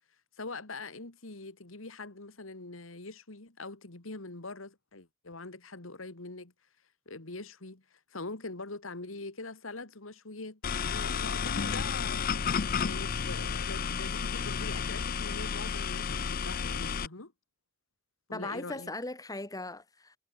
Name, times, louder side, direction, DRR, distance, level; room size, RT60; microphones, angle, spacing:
voice 1, 0.4-6.5 7.1-12.4 12.8-17.3 18.3-18.9, left 3 dB, 85° left, 2.3 m, -43 dB
sound 1, 10.6-17.1, left 6 dB, 45° left, 0.5 m, -32 dB
voice 2, 18.3-20.2, left 2 dB, 20° left, 1.8 m, -38 dB
head